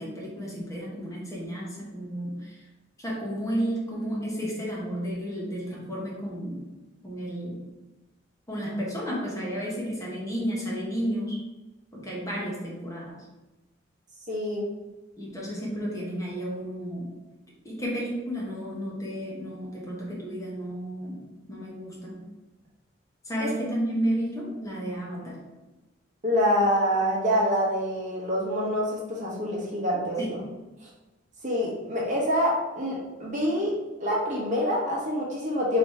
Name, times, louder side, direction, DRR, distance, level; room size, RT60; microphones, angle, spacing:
voice 1, 0.0-2.6 3.0-6.6 7.0-7.6 8.5-11.4 11.9-13.2 15.2-17.1 17.6-21.2 21.5-22.2 23.2-25.4 30.2-30.5, equal, 15° left, -5 dB, 1.0 m, -32 dB
voice 2, 14.3-14.6 26.2-30.2 31.4-33.7 34.0-35.8, equal, 40° right, -4 dB, 1.2 m, -26 dB
3.3 x 3.1 x 4.2 m, 1.1 s
head